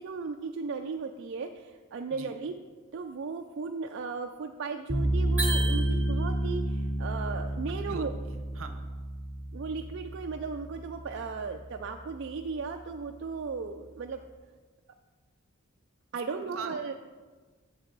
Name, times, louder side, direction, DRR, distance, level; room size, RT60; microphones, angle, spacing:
voice 1, 0.0-2.5 2.9-8.1 9.5-14.2 16.1-16.9, right 4 dB, 55° right, 4 dB, 0.4 m, -36 dB
sound 1, 4.9-12.0, right 1 dB, 10° left, 0.6 m, -31 dB
sound 2, 5.4-6.5, right 2 dB, 5° right, 1.4 m, -34 dB
voice 2, 7.8-8.8 16.1-16.7, right 4 dB, 70° right, 8 dB, 0.8 m, -42 dB
8.1 x 7.3 x 4.0 m, 1.4 s
head